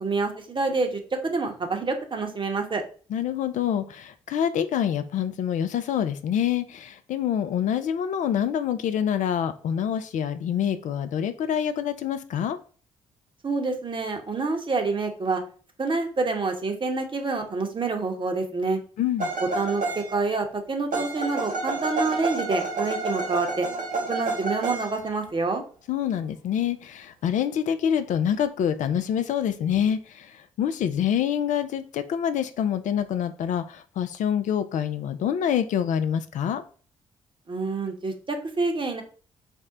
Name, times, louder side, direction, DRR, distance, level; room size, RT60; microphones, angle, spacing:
voice 1, 0.0-2.8 13.4-15.4 15.8-18.8 19.5-23.7 24.1-25.6 37.5-39.0, right 3 dB, 35° right, 4 dB, 0.9 m, -27 dB
voice 2, 3.1-12.6 19.0-19.3 25.9-36.6, left 9 dB, 55° left, 11 dB, 0.4 m, -26 dB
sound 1, 19.2-20.3 20.9-25.1, right 3 dB, 60° right, 0.9 m, -29 dB
4.4 x 2.1 x 3.7 m, 0.41 s
hypercardioid pair, 40°, 15 cm